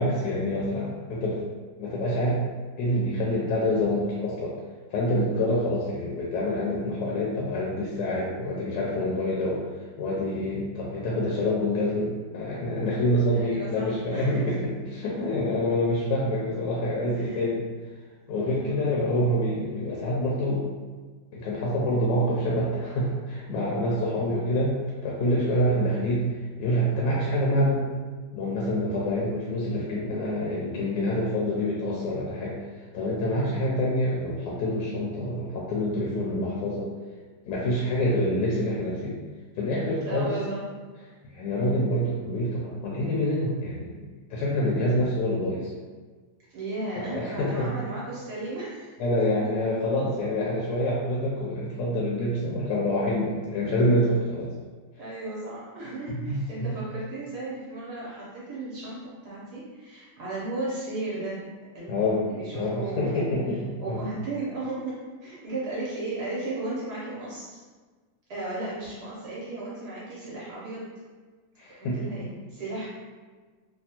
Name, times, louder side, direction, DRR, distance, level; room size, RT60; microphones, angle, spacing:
voice 1, 0.0-1.4 1.8-2.4 2.8-4.5 4.9-9.6 10.0-14.7 15.0-17.6 18.3-20.6 21.3-24.8 25.0-26.3 26.6-27.9 28.3-32.5 32.9-36.9 37.5-39.2 39.6-40.3 41.2-44.0 44.3-45.7 47.0-47.7 49.0-54.5 56.1-56.7 61.9-63.6 63.9-64.0 71.6-72.0, left 1 dB, 75° left, -5 dB, 1.1 m, -26 dB
voice 2, 13.3-14.5 17.1-17.4 18.4-18.9 24.1-24.2 33.4-33.7 40.1-40.6 46.5-49.2 55.0-59.0 59.2-61.5 61.7-63.3 63.8-64.9 65.2-67.6 68.3-70.9 71.8-72.9, right 2 dB, 65° right, -8 dB, 1.2 m, -35 dB
3.4 x 2.3 x 2.8 m, 1.4 s
omnidirectional pair, 2.1 m